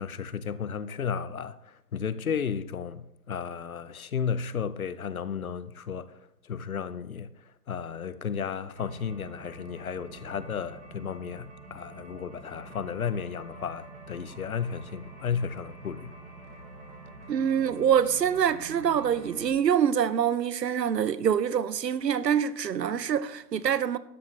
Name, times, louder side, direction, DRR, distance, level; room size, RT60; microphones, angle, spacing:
voice 1, 0.0-6.2 6.4-7.3 7.7-16.1, left 7 dB, 60° left, 0.7 m, -33 dB
sound 1, 8.7-19.5, right 2 dB, 45° right, 2.4 m, -47 dB
voice 2, 17.3-24.0, right 8 dB, 85° right, 0.8 m, -25 dB
12.0 x 11.5 x 3.2 m
hypercardioid pair, 175°, 48 cm